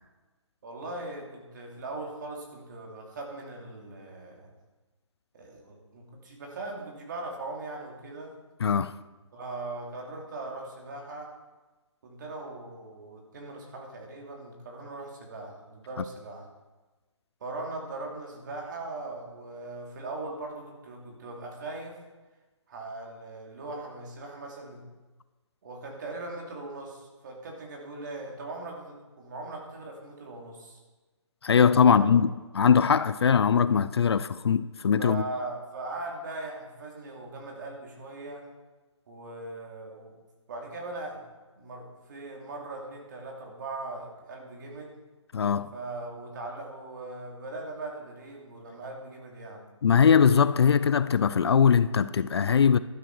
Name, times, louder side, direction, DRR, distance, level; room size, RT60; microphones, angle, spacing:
voice 1, 0.6-4.5 5.3-8.3 9.3-11.3 12.0-16.5 17.4-22.0 22.7-24.8 25.6-30.8 31.8-32.1 35.0-38.5 39.1-40.1 40.5-45.0 45.7-49.6, right 2 dB, 40° right, 2.7 m, -39 dB
voice 2, 8.6-8.9 31.4-35.2 45.3-45.7 49.8-52.8, left 7 dB, 55° left, 0.4 m, -21 dB
12.0 x 10.5 x 4.7 m
hypercardioid pair, 165°, 16 cm